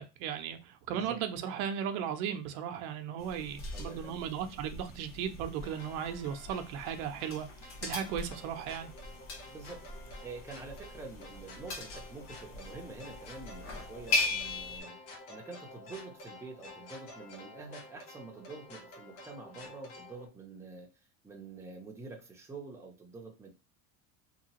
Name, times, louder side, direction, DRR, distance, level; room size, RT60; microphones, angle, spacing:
voice 1, 0.0-8.9, right 8 dB, 80° right, 7 dB, 0.7 m, -36 dB
voice 2, 0.9-1.2 3.7-4.2 9.5-9.8 10.2-15.0 15.3-20.9 21.2-23.5, right 3 dB, 5° right, 1 dB, 0.6 m, -47 dB
sound 1, 3.2-14.8, left 2 dB, 40° left, 1.1 m, -39 dB
sound 2, 5.6-20.3, left 2 dB, 75° left, 1.2 m, -51 dB
2.9 x 2.3 x 2.9 m, 0.29 s
supercardioid pair, 115°, 41 cm